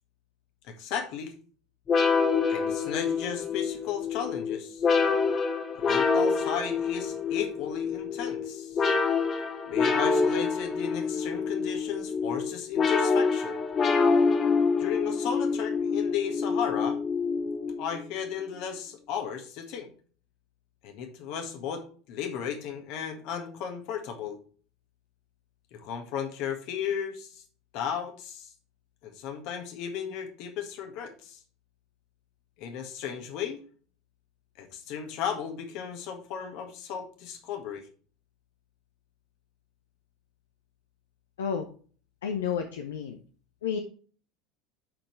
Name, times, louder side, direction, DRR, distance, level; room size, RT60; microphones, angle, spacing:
voice 1, 0.7-1.3 2.5-4.8 5.8-8.9 9.6-13.6 14.8-17.0 17.8-19.9 20.8-24.4 25.7-27.4 27.7-28.5 29.0-31.4 32.6-33.6 34.6-37.8, left 8 dB, 60° left, 5 dB, 1.7 m, -35 dB
sound 1, 1.9-18.1, left 5 dB, 35° left, 1.7 m, -27 dB
voice 2, 42.2-43.2 43.6-43.8, left 7 dB, 75° left, 4 dB, 0.8 m, -30 dB
11.0 x 4.5 x 3.3 m, 0.42 s
figure-of-eight pair, 75°, 0 cm